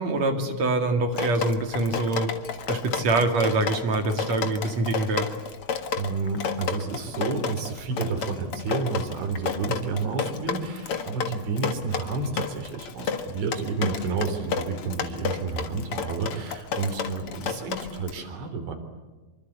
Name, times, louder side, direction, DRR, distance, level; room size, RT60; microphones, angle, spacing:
voice 1, 0.0-2.3 2.7-5.3, right 2 dB, 45° right, 5 dB, 2.8 m, -25 dB
Drip, 1.1-18.1, left 6 dB, 80° left, 1.2 m, -31 dB
voice 2, 6.0-18.7, right 4 dB, 80° right, 4 dB, 6.0 m, -30 dB
25.5 x 25.0 x 8.3 m, 1.3 s
omnidirectional pair, 5.2 m